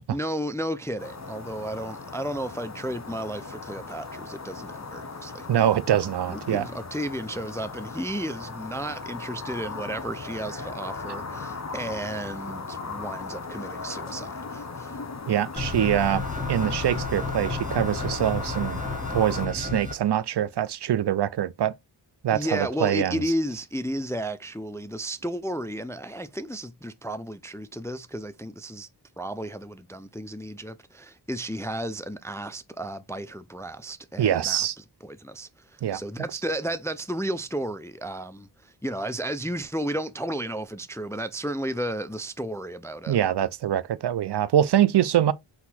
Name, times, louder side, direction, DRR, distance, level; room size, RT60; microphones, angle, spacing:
voice 1, 0.1-5.5 6.3-15.0 22.3-28.9 29.2-43.2, right 1 dB, 5° left, 0.3 m, -33 dB
sound 1, 1.0-19.5, left 4 dB, 35° left, 0.8 m, -37 dB
voice 2, 5.5-6.7 15.3-18.8 19.1-21.7 22.2-23.2 34.2-34.7 35.8-36.0 43.1-45.3, right 10 dB, 60° right, 0.5 m, -24 dB
sound 2, 15.6-19.9, left 3 dB, 15° right, 1.5 m, -32 dB
4.0 x 2.7 x 4.2 m
cardioid pair, 50°, 48 cm